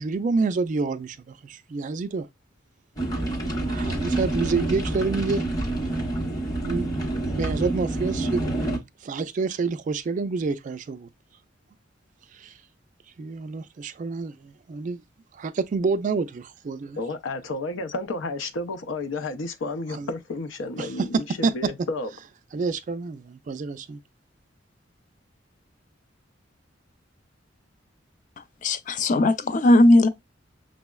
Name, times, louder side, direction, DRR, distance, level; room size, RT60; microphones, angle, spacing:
voice 1, 0.0-2.3 3.6-5.4 6.6-6.9 7.4-8.4 9.0-11.1 12.3-12.5 13.2-15.0 15.3-17.0 19.9-20.1 20.8-21.7 22.5-24.0, right 4 dB, 40° right, 0.3 m, -28 dB
sound 1, 3.0-8.8, right 2 dB, 20° left, 0.8 m, -27 dB
voice 2, 17.0-22.1, left 2 dB, 90° left, 0.6 m, -31 dB
voice 3, 28.6-30.1, left 1 dB, 40° left, 0.4 m, -17 dB
6.0 x 2.0 x 2.2 m
head